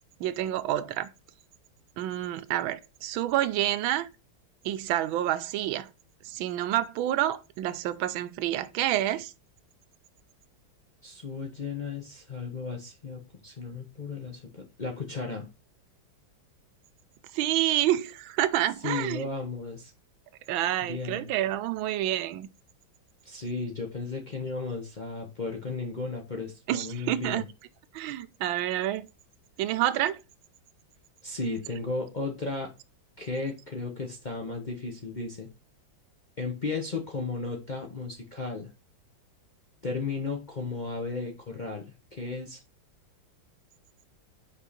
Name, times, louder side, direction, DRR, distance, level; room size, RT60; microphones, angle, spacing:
voice 1, 0.2-1.1 2.0-4.1 4.6-5.9 6.2-9.3 17.3-19.3 20.5-22.5 26.7-27.4 27.9-29.1 29.6-30.2, right 13 dB, 85° right, 1.4 m, -28 dB
voice 2, 11.0-15.5 18.8-19.9 20.8-21.3 23.2-27.5 31.2-32.7 33.2-35.5 36.4-38.7 39.8-42.6, left 3 dB, 35° left, 0.7 m, -34 dB
5.4 x 5.1 x 4.1 m
omnidirectional pair, 2.1 m